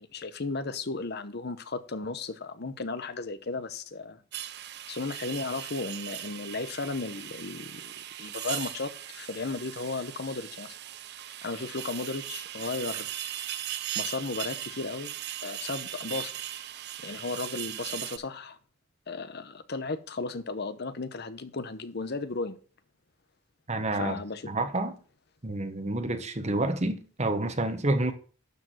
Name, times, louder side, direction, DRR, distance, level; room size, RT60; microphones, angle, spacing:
voice 1, 0.0-4.2 4.9-10.8 11.4-13.1 13.9-15.2 15.4-16.3 17.0-18.6 19.1-22.6 23.9-24.5, left 3 dB, 55° left, 0.9 m, -35 dB
sound 1, 4.3-18.2, right 12 dB, 55° right, 0.6 m, -38 dB
voice 2, 23.7-24.2 24.4-25.0 25.4-28.1, right 2 dB, 35° right, 1.2 m, -29 dB
12.0 x 4.9 x 6.2 m
head